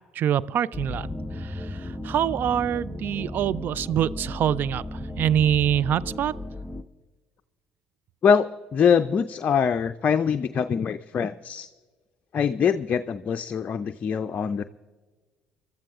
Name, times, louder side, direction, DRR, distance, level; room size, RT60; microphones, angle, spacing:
voice 1, 0.2-1.1 1.4-4.8 5.2-6.3, right 10 dB, 50° right, 19 dB, 0.4 m, -25 dB
sound 1, 0.7-6.8, left 1 dB, 10° left, 0.8 m, -35 dB
voice 2, 8.2-11.7 12.3-14.6, left 7 dB, 40° left, 9 dB, 0.5 m, -23 dB
29.5 x 13.0 x 2.5 m, 1.3 s
figure-of-eight pair, 55°, 4 cm